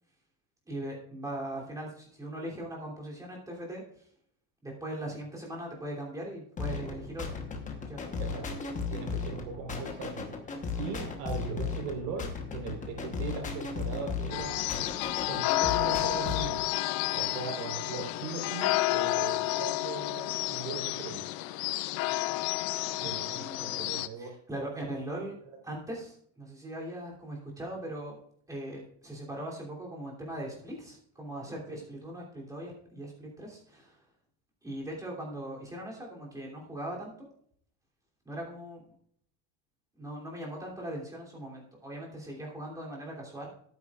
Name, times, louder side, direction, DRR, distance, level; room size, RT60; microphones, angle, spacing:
voice 1, 0.7-3.8 4.6-7.4 7.9-8.2 23.0-25.3 25.6-28.2 28.5-34.0 34.6-37.3 38.2-38.9 40.0-43.5, right 1 dB, 5° right, -3 dB, 3.1 m, -40 dB
sound 1, 6.6-16.6, left 5 dB, 15° left, 1.1 m, -36 dB
voice 2, 8.9-10.3 10.8-16.6 17.1-21.2 23.0-25.2 31.7-31.8, right 5 dB, 80° right, 3 dB, 4.2 m, -39 dB
sound 2, 14.3-24.1, left 18 dB, 55° left, 0.6 m, -31 dB
17.0 x 9.3 x 2.5 m, 0.64 s
cardioid pair, 170°, 48 cm